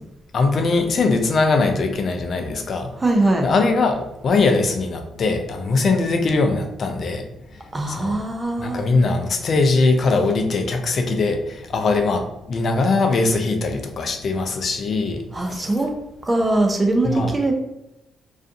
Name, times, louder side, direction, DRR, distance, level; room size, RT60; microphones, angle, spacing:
voice 1, 0.3-2.9 3.4-8.2 8.6-15.8 17.0-17.5, left 3 dB, 50° left, 5 dB, 0.4 m, -21 dB
voice 2, 3.0-3.5 7.7-8.9 15.3-15.9 16.2-17.5, right 2 dB, 20° right, 3 dB, 0.5 m, -21 dB
2.4 x 2.4 x 2.5 m, 0.90 s
cardioid pair, 90°, 0 cm